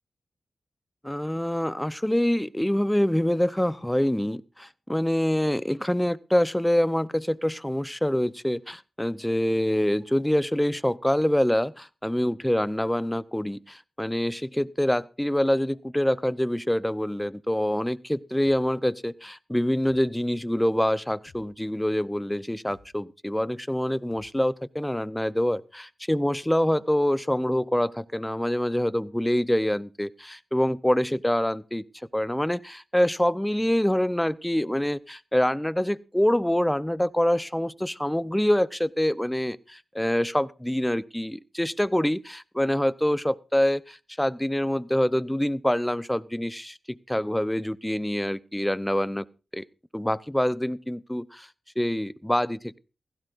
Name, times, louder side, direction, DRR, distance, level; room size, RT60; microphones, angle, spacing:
voice 1, 1.0-31.8 32.1-49.3 49.5-49.7 49.9-51.5 51.8-52.8, left 1 dB, 5° left, 0.6 m, -25 dB
sound 1, 18.4-18.6 19.8-20.0 21.3-21.5 22.7-22.9 24.1-24.3, left 4 dB, 75° left, 1.2 m, -53 dB
17.0 x 15.5 x 2.5 m
cardioid pair, 70°, 0 cm